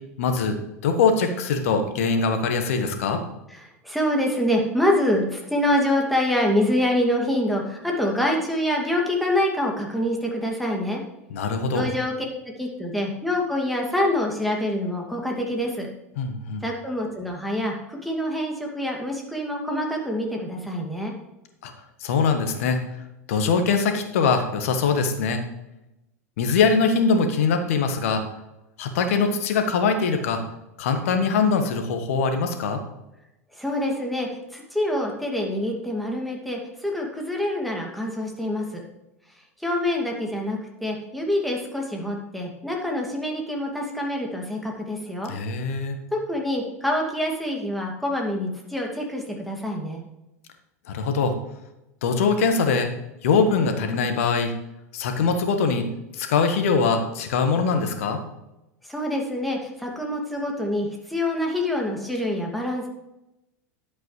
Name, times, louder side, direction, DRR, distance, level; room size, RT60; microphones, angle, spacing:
voice 1, 0.2-0.5 0.8-3.2 11.3-11.9 16.2-16.6 21.6-21.7 22.0-22.8 23.3-25.4 26.4-28.2 28.8-30.4 30.8-32.8 45.3-46.0 50.9-51.3 52.0-52.9 53.2-54.5 54.9-55.9 56.2-58.2, left 5 dB, 65° left, 6 dB, 1.5 m, -22 dB
voice 2, 3.5-11.0 11.7-12.1 12.6-15.9 16.6-21.1 33.5-38.8 39.6-45.3 46.1-50.0 58.8-62.9, left 1 dB, ahead, -1 dB, 2.3 m, -26 dB
11.0 x 8.2 x 3.2 m, 0.92 s
figure-of-eight pair, 90°, 8 cm